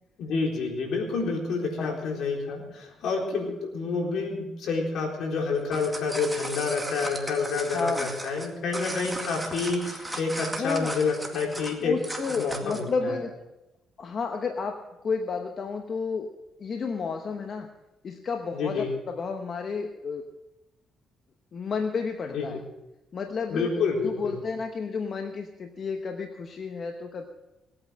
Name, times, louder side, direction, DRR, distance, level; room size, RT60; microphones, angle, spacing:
voice 1, 0.2-12.0 12.3-13.2 18.5-18.9 22.3-22.6 23.5-24.4, left 4 dB, 75° left, 1 dB, 3.9 m, -28 dB
sound 1, 5.6-12.9, right 1 dB, 5° right, 2.1 m, -36 dB
voice 2, 7.7-8.1 10.6-10.9 11.8-13.3 14.0-16.3 16.6-17.7 18.0-20.2 21.5-22.6 23.1-23.7 24.0-27.3, left 4 dB, 50° left, 5 dB, 1.1 m, -31 dB
19.0 x 8.9 x 6.4 m, 0.98 s
cardioid pair, 90°, 0 cm